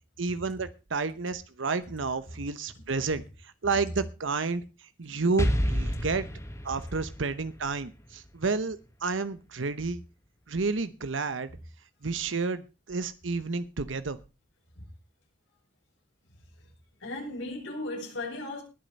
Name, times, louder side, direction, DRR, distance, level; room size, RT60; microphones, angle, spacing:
voice 1, 0.2-6.3 6.6-10.0 10.5-11.5 12.0-14.2, right 4 dB, 80° right, 0.9 m, -31 dB
Explosion, 5.4-9.2, equal, 15° left, 1.4 m, -31 dB
voice 2, 17.0-18.6, left 2 dB, 80° left, 7.9 m, -36 dB
20.5 x 7.7 x 5.3 m
head